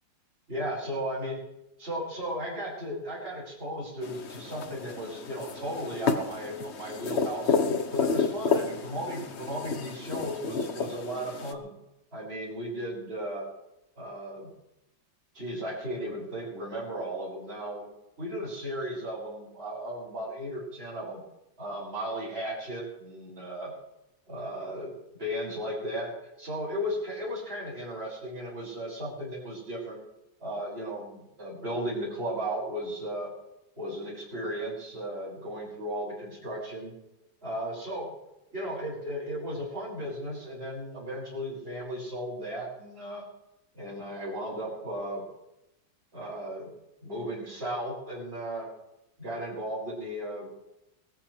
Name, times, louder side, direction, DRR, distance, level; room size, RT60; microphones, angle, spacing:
voice 1, 0.5-1.4 1.8-7.5 7.9-11.7 12.1-13.5 14.0-14.5 15.3-17.9 18.2-21.2 21.6-23.7 24.3-24.9 25.2-30.0 30.4-33.3 33.8-36.9 37.4-38.1 38.5-43.2 43.7-45.2 46.1-46.7 47.0-48.7 49.2-50.5, equal, 35° right, -7 dB, 6.2 m, -35 dB
sound 1, 4.0-11.5, left 5 dB, 45° left, 1.0 m, -31 dB
21.5 x 14.0 x 3.3 m, 0.90 s
omnidirectional pair, 2.0 m